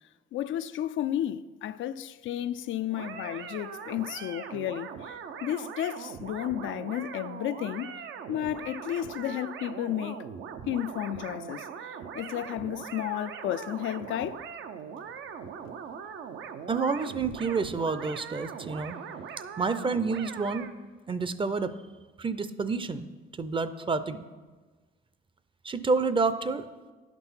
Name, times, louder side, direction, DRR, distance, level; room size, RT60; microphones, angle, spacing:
voice 1, 0.3-7.9 8.3-10.2 10.7-14.4, left 12 dB, 75° left, 0.4 m, -33 dB
sound 1, 2.9-20.7, right 7 dB, 75° right, 0.7 m, -41 dB
voice 2, 16.7-19.0 19.6-20.7 21.1-21.7 22.2-23.1 23.4-24.2 25.6-26.7, right 4 dB, 25° right, 0.5 m, -29 dB
10.5 x 6.0 x 5.7 m
cardioid pair, 90°, 20 cm